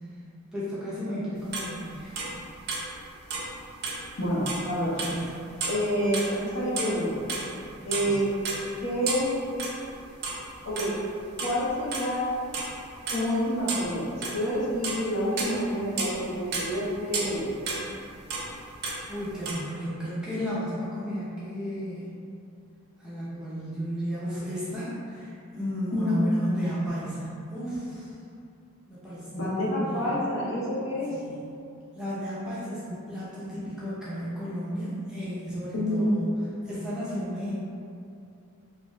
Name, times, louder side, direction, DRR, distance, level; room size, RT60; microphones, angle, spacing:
voice 1, 0.5-2.3 5.0-5.3 7.9-8.1 19.1-22.1 23.0-28.1 28.9-29.3 29.8-30.1 31.1-31.4 31.9-36.3 36.6-37.5, equal, 5° right, -10 dB, 0.6 m, -33 dB
sound 1, 1.5-3.0 3.2-3.6 3.8-4.7 5.0-5.3 5.6-7.0 7.2-9.9 10.2-10.4 10.6-12.1 12.5-12.8 13.1-14.5 14.8-15.0 15.3-16.2 16.5-18.5 18.7-19.5, right 3 dB, 50° right, 0.4 m, -32 dB
voice 2, 4.2-5.1 5.7-7.2 7.8-8.3 8.8-9.3 10.6-11.0 11.4-12.2 13.1-17.5 25.9-26.2 29.3-31.1 35.7-36.1, equal, 65° left, -7 dB, 0.7 m, -28 dB
2.6 x 2.3 x 3.1 m, 2.5 s
head